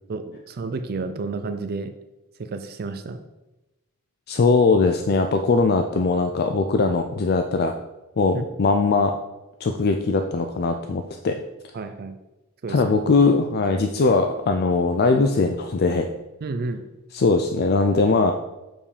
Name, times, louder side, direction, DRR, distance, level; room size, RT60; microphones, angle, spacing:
voice 1, 0.1-1.9 2.4-3.2 11.7-12.1 12.6-12.8 16.4-16.8, right 3 dB, 45° right, 9 dB, 0.4 m, -31 dB
voice 2, 4.3-7.7 8.2-9.2 9.6-11.4 12.7-16.1 17.1-18.3, left 3 dB, 45° left, 5 dB, 0.4 m, -20 dB
7.3 x 5.3 x 5.0 m, 1.0 s
head